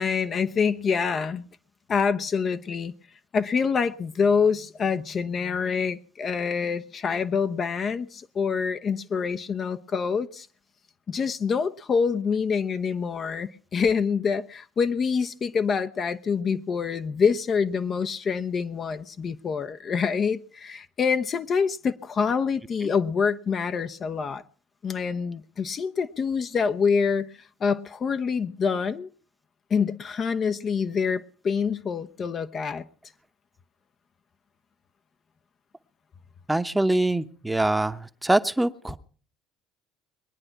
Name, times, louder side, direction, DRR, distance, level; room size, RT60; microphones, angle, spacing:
voice 1, 0.0-1.4 1.9-2.9 3.3-10.5 11.1-24.4 24.8-27.3 27.6-29.1 29.7-32.8, left 6 dB, 40° left, 0.8 m, -26 dB
voice 2, 36.5-39.0, right 1 dB, 10° right, 1.0 m, -24 dB
22.0 x 9.8 x 5.8 m
hypercardioid pair, 60°, 0 cm